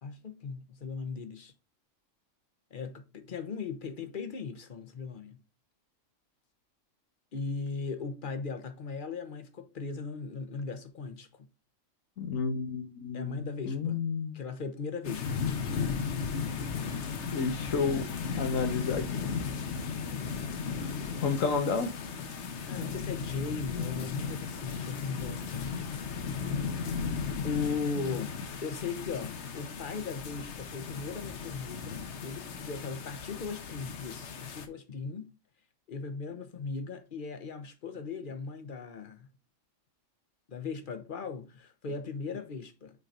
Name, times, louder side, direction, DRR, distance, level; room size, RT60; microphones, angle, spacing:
voice 1, 0.0-1.5 2.7-5.4 7.3-11.5 13.1-14.0 14.3-15.5 22.6-25.8 27.4-35.3 35.9-39.3 40.5-43.1, left 5 dB, 45° left, 0.9 m, -38 dB
voice 2, 12.2-14.4 17.2-18.1 18.4-19.4 21.2-21.9 27.9-28.2, left 5 dB, 90° left, 1.5 m, -31 dB
sound 1, 15.0-34.7, left 5 dB, 65° left, 1.1 m, -36 dB
6.0 x 3.8 x 4.2 m
omnidirectional pair, 1.3 m